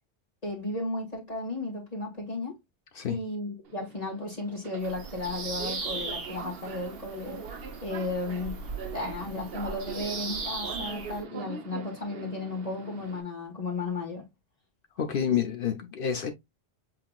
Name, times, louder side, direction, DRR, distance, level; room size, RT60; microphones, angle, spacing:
voice 1, 0.4-2.6 3.1-7.4 7.8-8.6 8.9-14.3, left 2 dB, 35° left, 1.7 m, -34 dB
Subway metro underground, 3.6-13.2, right 5 dB, 65° right, 1.0 m, -43 dB
Bird vocalization bird call bird song, 4.8-11.2, right 4 dB, 90° right, 1.4 m, -38 dB
voice 2, 15.0-16.3, left 8 dB, 60° left, 0.9 m, -28 dB
7.5 x 2.9 x 2.3 m
omnidirectional pair, 1.1 m